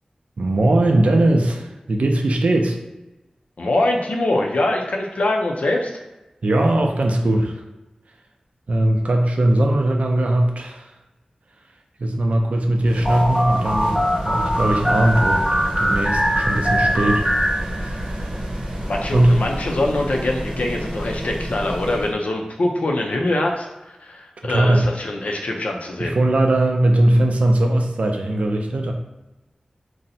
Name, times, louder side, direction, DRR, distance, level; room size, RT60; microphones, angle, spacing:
voice 1, 0.4-2.8 6.4-7.6 8.7-10.9 12.0-15.5 15.8-17.3 17.6-18.3 19.1-19.4 24.4-24.9 26.0-28.9, right 1 dB, 70° right, 2 dB, 0.4 m, -19 dB
voice 2, 3.6-5.9 18.9-26.2, left 1 dB, 80° left, 1 dB, 0.4 m, -23 dB
sound 1, 12.8-22.2, equal, 35° right, 0.7 m, -29 dB
sound 2, 13.0-18.2, equal, 10° left, 0.5 m, -21 dB
2.6 x 2.0 x 4.0 m, 1.0 s
wide cardioid pair, 85°, 2 cm